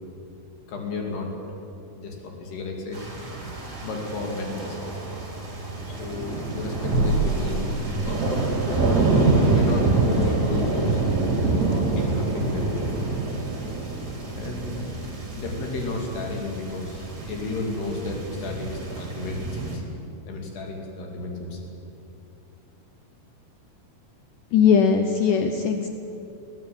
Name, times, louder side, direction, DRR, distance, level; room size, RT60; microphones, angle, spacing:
voice 1, 0.7-1.3 2.0-3.1 3.8-5.0 5.9-7.7 7.9-8.4 9.5-11.0 11.4-12.9 14.4-14.8 15.3-19.9 20.3-21.7, left 3 dB, 85° left, 1 dB, 4.8 m, -33 dB
sound 1, 2.9-19.8, right 3 dB, 25° right, 3.8 m, -26 dB
sound 2, 6.9-8.5, right 1 dB, 40° left, 6.9 m, -26 dB
voice 2, 24.5-25.9, left 7 dB, 70° left, 5 dB, 2.2 m, -19 dB
22.0 x 14.5 x 8.8 m, 2.8 s
omnidirectional pair, 4.5 m